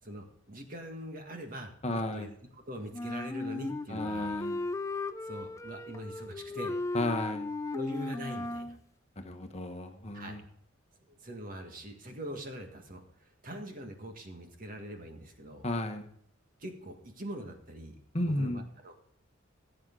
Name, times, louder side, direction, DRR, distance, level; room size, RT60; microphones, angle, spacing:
voice 1, 0.0-4.3 5.2-6.8 7.7-8.8 10.1-10.4 11.1-15.6 16.6-18.9, equal, 45° right, 4 dB, 1.8 m, -43 dB
voice 2, 1.8-2.3 3.9-4.6 6.9-7.5 9.2-10.4 15.6-16.1 18.1-18.6, left 1 dB, 30° left, 6 dB, 1.1 m, -33 dB
Wind instrument woodwind instrument, 2.9-8.8, left 2 dB, 15° left, 0.3 m, -36 dB
16.0 x 7.9 x 3.8 m, 0.69 s
head